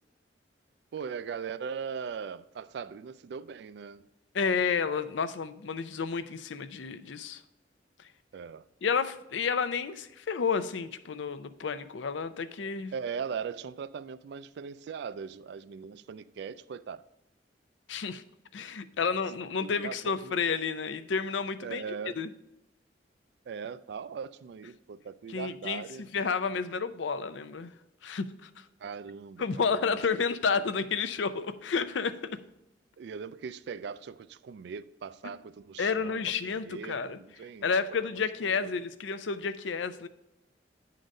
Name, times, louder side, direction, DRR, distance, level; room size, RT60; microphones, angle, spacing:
voice 1, 0.9-4.1 8.3-8.6 12.9-17.0 19.6-20.4 21.6-22.2 23.5-26.1 28.8-30.0 33.0-38.0 38.4-38.7, right 6 dB, 65° right, 0.3 m, -40 dB
voice 2, 4.3-7.4 8.8-12.9 17.9-18.2 18.5-21.8 22.2-22.3 25.3-27.7 28.0-28.6 29.4-32.3 35.8-37.2 37.6-40.1, left 5 dB, 85° left, 0.5 m, -31 dB
8.9 x 3.9 x 5.3 m
head